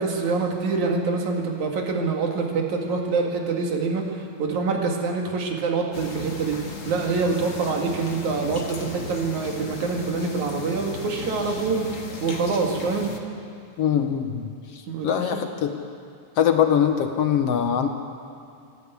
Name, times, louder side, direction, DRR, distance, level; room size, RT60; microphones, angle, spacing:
voice 1, 0.0-11.9 12.2-13.1 14.9-15.1, right 4 dB, 80° right, 1 dB, 3.4 m, -25 dB
sound 1, 5.9-13.2, left 4 dB, 40° left, 1.1 m, -36 dB
voice 2, 13.8-15.8 16.4-17.9, left 8 dB, 65° left, 6 dB, 1.7 m, -23 dB
27.0 x 12.0 x 8.2 m, 2.4 s
omnidirectional pair, 3.3 m